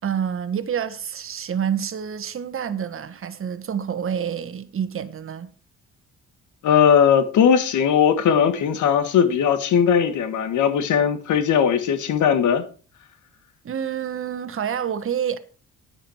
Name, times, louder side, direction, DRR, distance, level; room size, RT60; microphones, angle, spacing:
voice 1, 0.0-5.5 13.6-15.4, right 8 dB, 45° right, 1.3 m, -28 dB
voice 2, 6.6-12.6, left 8 dB, 75° left, 1.6 m, -19 dB
10.5 x 8.8 x 4.5 m
cardioid pair, 90°, 30 cm